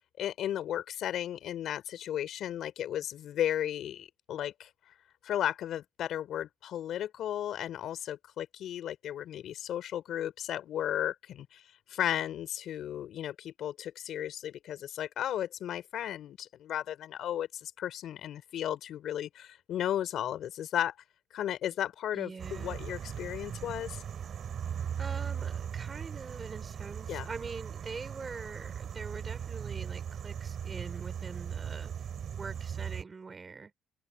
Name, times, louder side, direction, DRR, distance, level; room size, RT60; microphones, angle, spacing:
voice 1, 0.2-4.7 5.2-11.6 11.9-20.9 21.3-24.0 27.1-27.3, left 11 dB, 60° left, 4.3 m, -34 dB
voice 2, 22.1-22.8 25.0-33.7, right 4 dB, 25° right, 3.8 m, -44 dB
sound 1, 22.4-33.0, right 8 dB, 45° right, 4.3 m, -38 dB
open air
cardioid pair, 130°, 0 cm